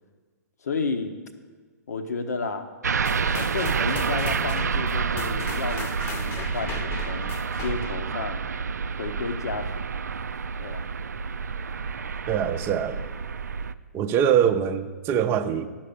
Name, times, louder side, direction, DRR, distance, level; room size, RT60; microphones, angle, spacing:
voice 1, 0.6-1.1 1.9-2.7 3.3-8.4 9.0-9.8 10.6-10.8, left 4 dB, 70° left, 8 dB, 1.0 m, -32 dB
sound 1, 2.8-13.7, right 5 dB, 80° right, 0.3 m, -29 dB
sound 2, 3.0-8.1, left 3 dB, 25° left, 0.8 m, -37 dB
voice 2, 12.3-13.0 13.9-15.7, right 8 dB, 25° right, 9 dB, 0.5 m, -23 dB
11.5 x 5.9 x 6.6 m, 1.5 s
figure-of-eight pair, 120°, 9 cm